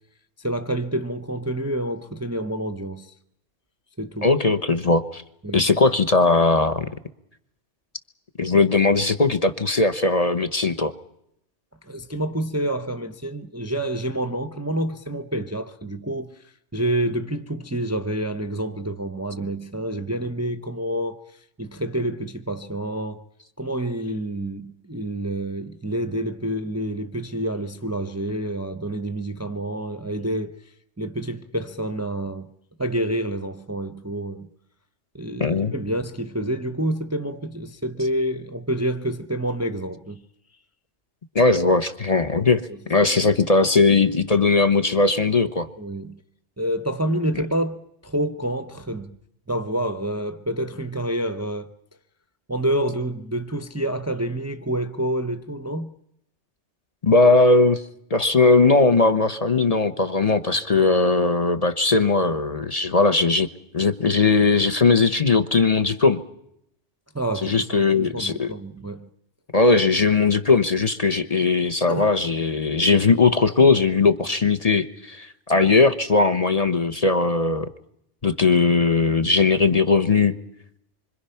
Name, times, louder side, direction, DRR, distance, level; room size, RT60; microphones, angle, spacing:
voice 1, 0.4-3.1 4.0-4.3 5.4-5.7 11.8-16.4 16.7-21.2 21.6-23.2 23.6-30.5 31.0-32.5 32.8-34.5 35.1-40.2 42.7-42.8 45.8-46.2 46.6-49.2 49.5-51.7 52.5-55.9 67.1-69.1 71.9-72.1, right 1 dB, 15° right, 0.7 m, -28 dB
voice 2, 4.2-5.2 5.5-6.9 8.4-10.9 35.4-35.7 41.3-42.6 42.9-45.7 57.0-57.8 58.1-63.5 63.7-66.2 67.4-68.5 69.5-77.7 78.2-80.4, left 3 dB, 35° left, 1.0 m, -19 dB
26.5 x 25.0 x 5.8 m
omnidirectional pair, 1.2 m